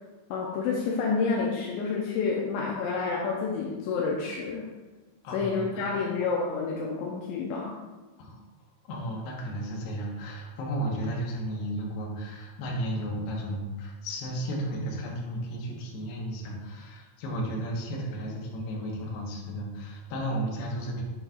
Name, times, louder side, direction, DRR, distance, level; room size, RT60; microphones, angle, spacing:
voice 1, 0.3-4.7 5.3-7.8, left 4 dB, 80° left, -2 dB, 2.7 m, -29 dB
voice 2, 5.2-5.9 8.2-8.4 8.9-21.0, right 1 dB, 65° left, -2 dB, 2.8 m, -33 dB
8.0 x 7.4 x 2.4 m, 1.2 s
omnidirectional pair, 5.8 m